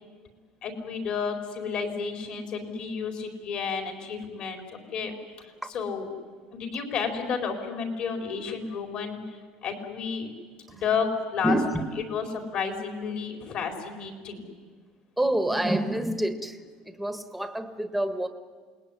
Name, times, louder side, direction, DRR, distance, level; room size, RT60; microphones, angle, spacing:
voice 1, 0.6-4.6 4.9-6.1 6.5-9.2 9.6-10.3 10.7-11.6 12.1-14.6, left 6 dB, 45° left, 4 dB, 4.4 m, -31 dB
voice 2, 11.4-11.9 15.2-16.6 17.0-18.3, right 1 dB, ahead, 8 dB, 1.6 m, -27 dB
28.5 x 20.5 x 10.0 m, 1.5 s
cardioid pair, 155°, 2 cm